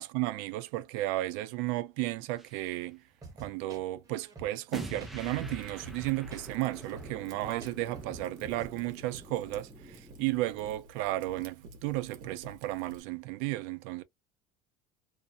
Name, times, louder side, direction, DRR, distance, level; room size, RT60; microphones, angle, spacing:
voice 1, 0.0-3.0 3.4-14.0, right 17 dB, 75° right, 0.4 m, -34 dB
sound 1, 2.4-2.7 4.7-10.7, equal, ahead, 0.3 m, -47 dB
sound 2, 3.2-8.7, right 3 dB, 20° right, 0.9 m, -49 dB
Fire, 5.2-13.0, right 3 dB, 55° right, 0.8 m, -50 dB
2.5 x 2.0 x 2.5 m
cardioid pair, 160°, 17 cm